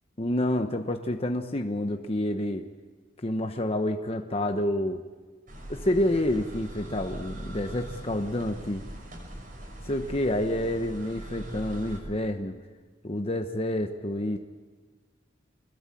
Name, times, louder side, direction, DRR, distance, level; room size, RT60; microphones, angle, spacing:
voice 1, 0.2-2.6 3.2-5.0 5.7-8.8 9.8-12.6 13.0-14.4, left 1 dB, 30° left, 5 dB, 1.1 m, -28 dB
sound 1, 5.5-12.0, right 1 dB, 50° right, 6.4 m, -41 dB
26.0 x 21.5 x 8.7 m, 1.4 s
head